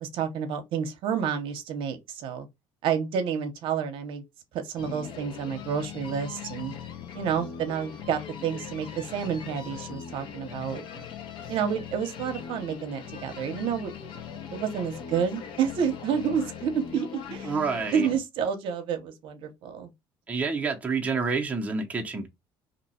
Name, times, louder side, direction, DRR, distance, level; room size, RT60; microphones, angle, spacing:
voice 1, 0.0-2.5 2.8-4.2 4.5-6.7 7.1-11.0 11.5-13.9 14.5-17.5 17.9-19.9, right 7 dB, 65° right, 0.7 m, -29 dB
sound 1, 4.8-18.2, left 7 dB, 60° left, 0.8 m, -40 dB
voice 2, 17.4-18.1 20.3-22.3, right 4 dB, 15° right, 0.6 m, -28 dB
2.8 x 2.2 x 4.1 m
cardioid pair, 130°, 9 cm